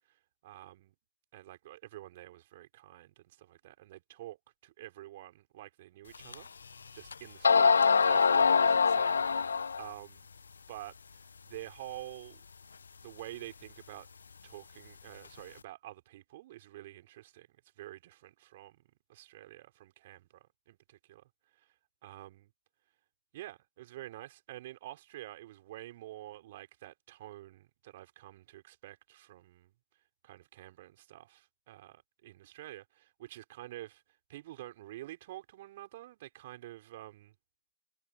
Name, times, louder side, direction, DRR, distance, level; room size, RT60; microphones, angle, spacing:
voice 1, 0.1-0.9 1.3-6.5 6.9-7.8 8.1-10.3 10.7-12.4 13.0-14.1 14.4-17.5 17.8-18.8 19.1-21.2 21.5-21.7 22.0-22.5 23.3-29.7 30.2-34.0 34.3-37.3, right 15 dB, 40° right, 4.5 m, -48 dB
sound 1, 6.3-6.4 7.1-7.2 7.4-9.9, left 5 dB, 65° left, 0.6 m, -24 dB
figure-of-eight pair, 135°, 0 cm